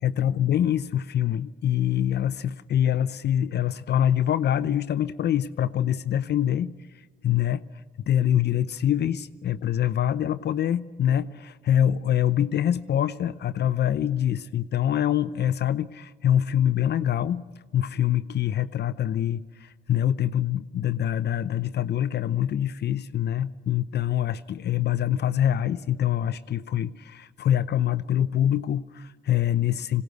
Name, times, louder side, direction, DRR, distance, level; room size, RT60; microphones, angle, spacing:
voice 1, 0.0-6.7 7.2-7.6 8.0-17.4 17.7-30.0, left 10 dB, 55° left, 14 dB, 0.6 m, -25 dB
21.0 x 17.5 x 8.0 m, 1.4 s
cardioid pair, 90°, 20 cm